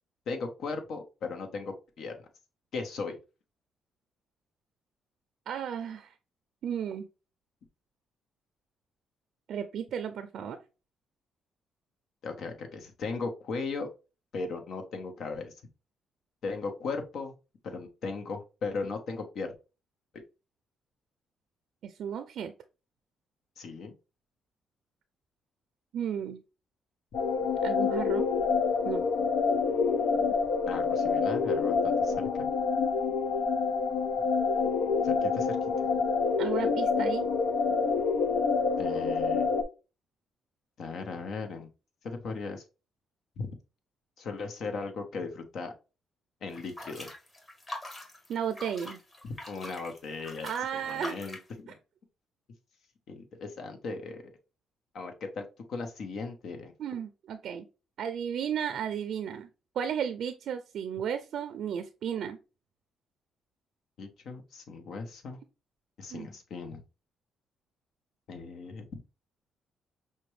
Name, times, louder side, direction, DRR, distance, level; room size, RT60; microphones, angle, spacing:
voice 1, 0.3-2.2 2.7-3.2 12.2-13.9 14.3-15.5 16.4-17.3 17.6-19.5 20.1-20.2 23.6-23.9 30.7-32.5 35.0-35.6 38.8-39.5 40.8-41.7 42.0-42.6 43.4-43.5 44.2-45.7 46.4-47.1 49.5-50.5 50.8-51.8 53.1-54.3 54.9-56.7 64.0-65.4 66.0-66.8 68.3-69.0, left 4 dB, 65° left, 5 dB, 1.0 m, -37 dB
voice 2, 5.5-6.1 6.6-7.1 9.5-10.6 21.8-22.5 25.9-26.4 27.6-28.3 28.8-29.0 36.4-37.3 48.3-49.0 50.4-51.2 56.8-57.7 58.0-59.5 59.8-62.4 66.1-66.3, right 8 dB, 70° right, 9 dB, 0.4 m, -34 dB
sound 1, 27.1-39.6, left 5 dB, 85° left, 0.5 m, -27 dB
sound 2, 46.5-51.5, left 1 dB, 25° left, 1.6 m, -43 dB
5.8 x 2.2 x 3.1 m, 0.31 s
cardioid pair, 90°, 0 cm